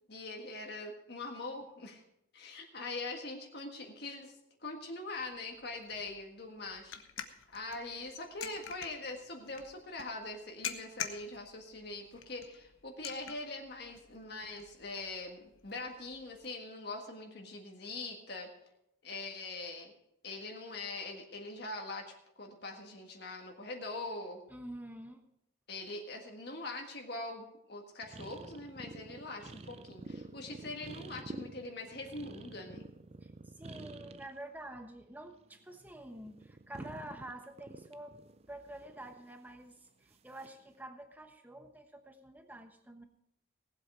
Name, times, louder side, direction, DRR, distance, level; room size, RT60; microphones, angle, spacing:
voice 1, 0.1-2.0 2.3-6.9 7.2-18.5 19.0-19.9 20.2-24.4 25.7-32.8, left 2 dB, 55° left, 2 dB, 1.7 m, -43 dB
sound 1, 5.2-16.5, left 8 dB, 85° left, 1.1 m, -48 dB
voice 2, 24.5-25.2 33.2-38.2 38.5-43.0, right 1 dB, 10° right, 6 dB, 1.1 m, -48 dB
sound 2, 28.0-34.4 34.7-35.7 36.0-39.6 40.3-40.6, right 2 dB, 30° right, 0.5 m, -49 dB
18.5 x 8.0 x 5.0 m, 0.77 s
head